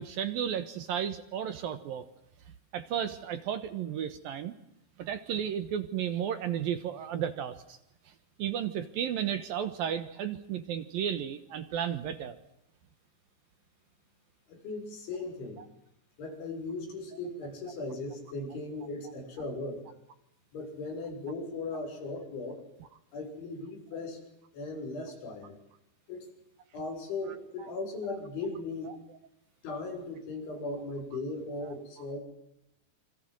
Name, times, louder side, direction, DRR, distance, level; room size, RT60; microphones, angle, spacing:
voice 1, 0.0-2.0 2.7-4.5 5.0-7.8 8.4-12.4 27.6-27.7 28.9-29.0 31.6-31.7, right 9 dB, 65° right, 11 dB, 2.6 m, -33 dB
voice 2, 14.5-15.6 16.2-19.8 20.5-22.6 23.1-24.2 24.5-25.6 26.1-26.3 26.7-29.0 29.6-32.2, left 3 dB, 85° left, 3 dB, 8.8 m, -38 dB
28.5 x 25.5 x 7.8 m, 0.81 s
omnidirectional pair, 5.2 m